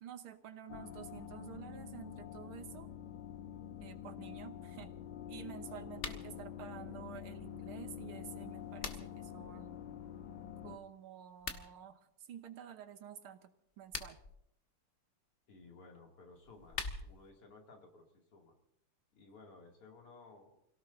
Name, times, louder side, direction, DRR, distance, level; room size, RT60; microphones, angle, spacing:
voice 1, 0.0-2.9 3.8-4.9 5.3-9.8 10.6-14.2, right 9 dB, 70° right, 9 dB, 1.9 m, -50 dB
sound 1, 0.7-10.8, left 10 dB, 60° left, 1.4 m, -47 dB
sound 2, 5.9-6.3 8.3-9.3 11.3-11.7 13.7-14.3 16.3-17.3, left 3 dB, 35° left, 1.1 m, -43 dB
voice 2, 15.5-18.6 19.1-20.6, left 3 dB, 85° left, 1 dB, 3.5 m, -57 dB
29.5 x 17.5 x 2.7 m, 0.76 s
omnidirectional pair, 2.4 m